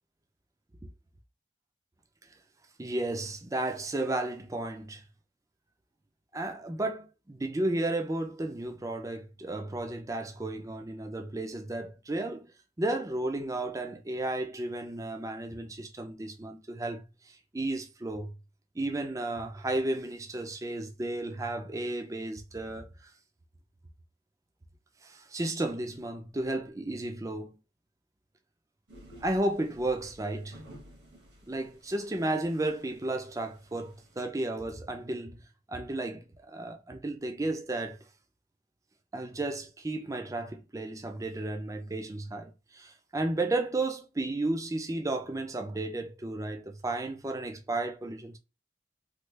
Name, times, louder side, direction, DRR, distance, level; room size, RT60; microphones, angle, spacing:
voice 1, 2.8-5.0 6.3-12.5 12.8-17.0 17.5-18.3 18.8-23.1 25.0-27.6 29.2-30.6 31.5-35.4 35.7-38.0 39.1-48.4, right 2 dB, 20° right, 0.5 m, -33 dB
sound 1, 28.9-34.2, equal, 75° right, 1.3 m, -54 dB
3.2 x 2.4 x 3.3 m
head